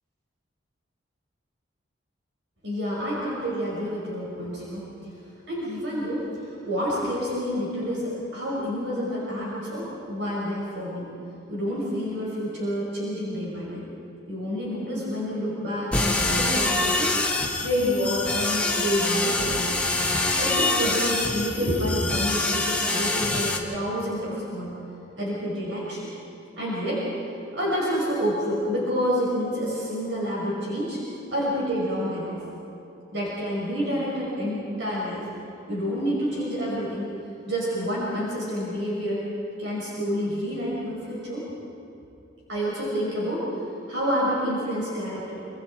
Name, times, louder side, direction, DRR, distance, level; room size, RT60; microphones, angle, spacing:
voice 1, 2.6-4.9 5.5-11.1 11.5-13.8 14.3-17.1 17.6-19.8 20.4-24.7 25.2-26.1 26.6-27.1 27.5-31.0 31.3-32.4 33.1-35.2 35.7-37.1 37.5-39.2 39.6-41.4 42.5-43.4 43.9-45.4, equal, 65° right, -6 dB, 5.6 m, -28 dB
sound 1, 15.9-23.6, left 2 dB, 5° left, 1.7 m, -25 dB
26.0 x 25.5 x 4.5 m, 2.8 s
head